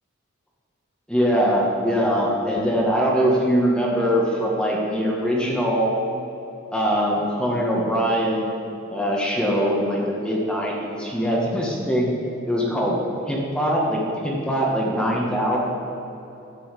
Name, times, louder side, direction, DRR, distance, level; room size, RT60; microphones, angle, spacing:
voice 1, 1.1-5.9 6.7-8.5 8.9-12.1 12.5-13.0 13.3-15.6, equal, 5° left, -3 dB, 1.4 m, -22 dB
10.5 x 5.5 x 8.2 m, 2.9 s
head